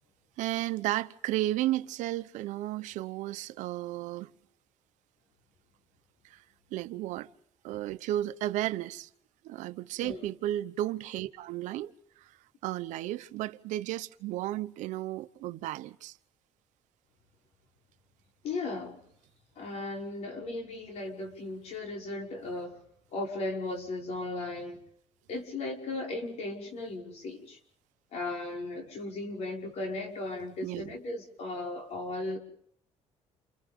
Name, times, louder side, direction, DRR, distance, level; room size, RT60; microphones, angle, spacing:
voice 1, 0.4-4.3 6.3-6.4 6.7-7.3 7.6-9.1 9.4-11.9 12.6-16.2 30.6-31.0, right 14 dB, 85° right, 0.9 m, -33 dB
voice 2, 18.4-19.0 19.6-22.8 23.1-24.8 25.3-27.6 28.1-32.4, left 2 dB, 60° left, 5.7 m, -36 dB
29.0 x 29.0 x 3.7 m
cardioid pair, 125°, 12 cm